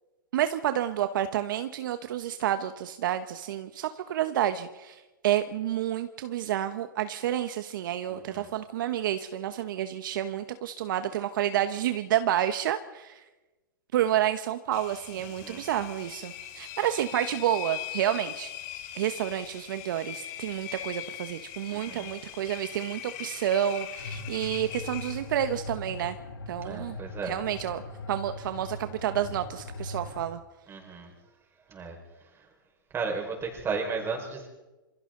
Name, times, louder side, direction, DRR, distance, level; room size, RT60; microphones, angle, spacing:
voice 1, 0.3-13.2 13.9-18.5 18.9-26.1 26.5-26.9 27.2-27.8 28.1-30.4, right 11 dB, 60° right, 9 dB, 1.3 m, -29 dB
voice 2, 8.1-8.5 15.4-15.6 21.7-22.1 26.6-27.3 30.7-31.1 31.7-32.0 32.9-34.5, right 4 dB, 20° right, 2 dB, 5.4 m, -34 dB
Engine, 14.7-25.6, left 11 dB, 45° left, 4.7 m, -41 dB
sound 1, 24.0-30.3, left 2 dB, 80° left, 2.8 m, -40 dB
27.5 x 26.0 x 4.0 m, 1.1 s
hypercardioid pair, 125°, 12 cm